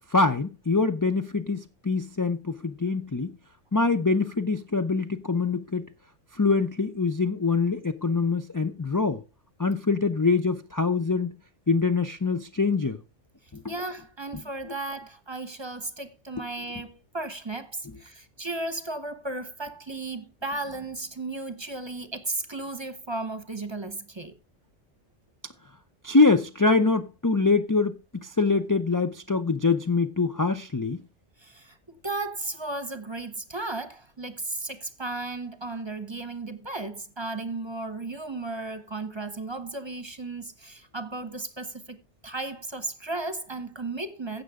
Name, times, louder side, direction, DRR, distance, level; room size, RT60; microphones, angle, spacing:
voice 1, 0.1-3.3 3.7-5.8 6.3-9.2 9.6-11.3 11.7-13.0 13.5-13.7 14.3-14.4 26.0-27.9 28.2-31.0, left 4 dB, 25° left, 0.4 m, -24 dB
voice 2, 13.7-24.3 31.4-44.4, right 2 dB, 25° right, 1.1 m, -35 dB
15.5 x 6.7 x 3.6 m
omnidirectional pair, 1.2 m